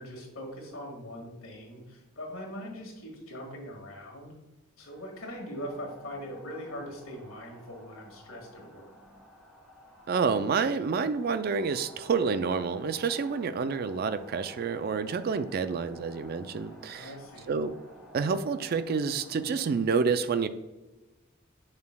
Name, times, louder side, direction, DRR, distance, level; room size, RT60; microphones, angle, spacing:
voice 1, 0.0-4.3 4.8-8.8 16.8-17.5, equal, 70° left, 0 dB, 1.9 m, -41 dB
sound 1, 4.8-19.8, equal, ahead, 1.4 m, -53 dB
voice 2, 10.1-17.1 17.5-17.8 18.1-20.5, right 5 dB, 45° right, 12 dB, 0.3 m, -28 dB
6.9 x 6.6 x 2.2 m, 1.1 s
head